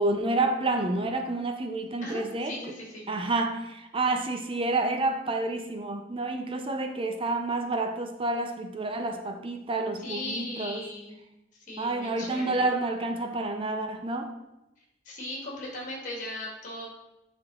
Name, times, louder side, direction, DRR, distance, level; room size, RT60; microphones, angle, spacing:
voice 1, 0.0-2.6 3.1-10.8 11.8-14.3, right 2 dB, 30° right, 5 dB, 0.5 m, -29 dB
voice 2, 2.0-3.1 10.0-11.1 11.7-12.7 15.0-16.9, left 1 dB, 40° left, -2 dB, 2.3 m, -38 dB
9.0 x 4.4 x 4.1 m, 0.93 s
head